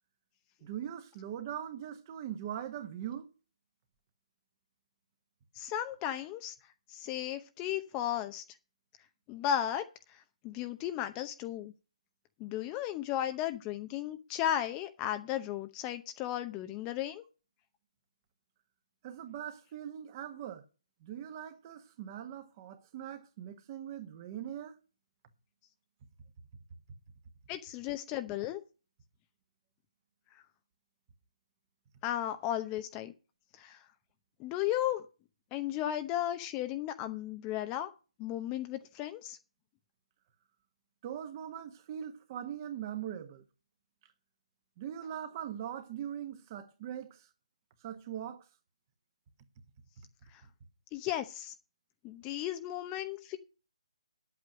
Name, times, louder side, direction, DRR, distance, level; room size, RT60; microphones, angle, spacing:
voice 1, 0.6-3.3 19.0-20.6 21.0-24.8 41.0-43.4 44.8-47.3 47.8-48.4, right 10 dB, 30° right, 1.4 m, -41 dB
voice 2, 5.5-6.5 6.9-8.4 9.3-11.7 12.4-17.2 27.5-28.6 32.0-33.1 33.6-33.8 34.4-35.0 35.5-37.9 38.2-39.4 50.3-50.4 50.9-51.5 52.0-53.4, left 11 dB, 20° left, 0.7 m, -35 dB
9.8 x 8.4 x 6.1 m
hypercardioid pair, 155°, 4 cm